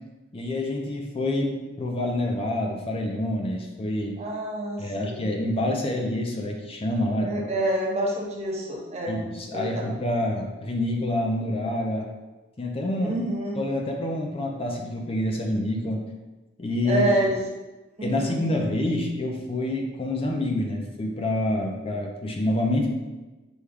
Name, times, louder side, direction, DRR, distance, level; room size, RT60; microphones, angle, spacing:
voice 1, 0.3-4.2 4.8-7.3 9.1-12.1 12.6-13.2 13.6-16.0 16.6-17.1 18.0-23.0, left 1 dB, 30° left, 1 dB, 0.5 m, -27 dB
voice 2, 4.2-5.3 7.2-9.2 9.5-9.8 13.0-13.6 16.8-17.5 18.0-18.5, right 1 dB, 35° right, -2 dB, 0.8 m, -27 dB
6.1 x 2.2 x 3.5 m, 1.1 s
head